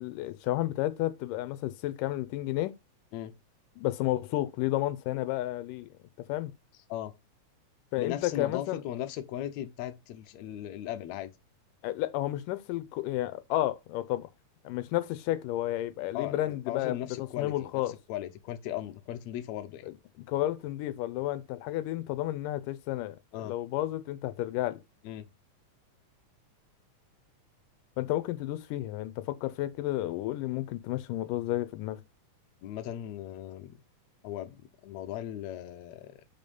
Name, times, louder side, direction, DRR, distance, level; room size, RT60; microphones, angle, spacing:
voice 1, 0.0-2.7 3.8-5.9 6.3-6.5 7.9-8.8 11.8-14.3 14.6-17.0 17.4-18.0 19.9-20.0 20.3-23.2 23.4-24.8 28.0-32.0, left 15 dB, 90° left, 2.3 m, -31 dB
voice 2, 8.0-11.3 16.1-17.8 18.1-19.9 23.3-23.6 25.0-25.3 32.6-33.8 34.2-36.2, left 12 dB, 70° left, 1.8 m, -37 dB
5.4 x 4.9 x 5.4 m
omnidirectional pair, 3.7 m